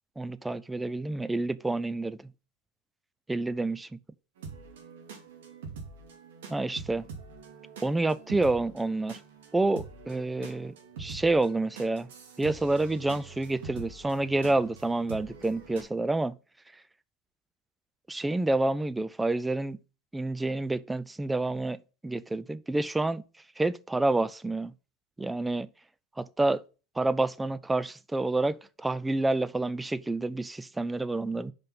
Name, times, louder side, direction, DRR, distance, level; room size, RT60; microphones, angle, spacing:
voice 1, 0.2-2.3 3.3-3.9 6.5-7.0 7.8-9.2 9.5-12.1 12.4-16.4 18.1-19.8 20.1-23.2 23.6-24.7 25.2-25.7 26.2-26.6 27.0-31.5, right 2 dB, 5° right, 0.4 m, -28 dB
sound 1, 4.4-15.8, right 5 dB, 90° right, 2.4 m, -45 dB
5.6 x 5.2 x 5.9 m
supercardioid pair, 145°, 0 cm